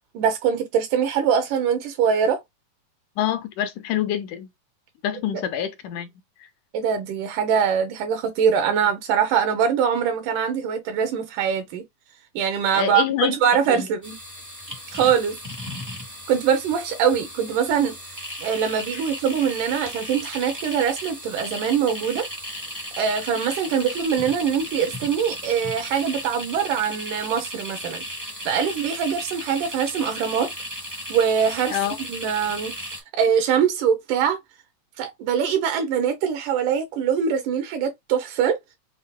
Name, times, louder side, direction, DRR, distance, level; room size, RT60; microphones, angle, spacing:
voice 1, 0.1-2.4 6.7-11.9 12.3-14.2 14.9-15.4 16.3-18.0 18.4-22.3 23.0-28.0 28.5-30.5 31.1-31.8 32.1-32.7 33.2-34.4 35.0-38.6, right 7 dB, 85° right, 2.6 m, -23 dB
voice 2, 3.2-4.5 5.0-6.1 12.7-13.4 13.7-13.9 31.7-32.0, left 11 dB, 80° left, 2.3 m, -26 dB
sound 1, 14.0-33.0, equal, 25° right, 0.4 m, -35 dB
7.0 x 2.4 x 2.3 m
omnidirectional pair, 3.6 m